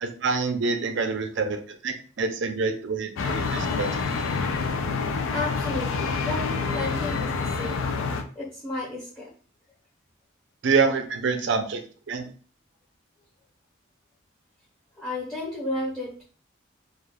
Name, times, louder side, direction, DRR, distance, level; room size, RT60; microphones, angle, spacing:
voice 1, 0.0-3.9 10.6-11.8 12.1-12.3, right 4 dB, 65° right, 6 dB, 0.4 m, -26 dB
sound 1, 3.2-8.2, left 4 dB, 80° left, 0.4 m, -27 dB
voice 2, 5.3-9.3 15.0-16.2, left 2 dB, 5° left, -8 dB, 0.6 m, -33 dB
2.4 x 2.2 x 3.3 m, 0.41 s
head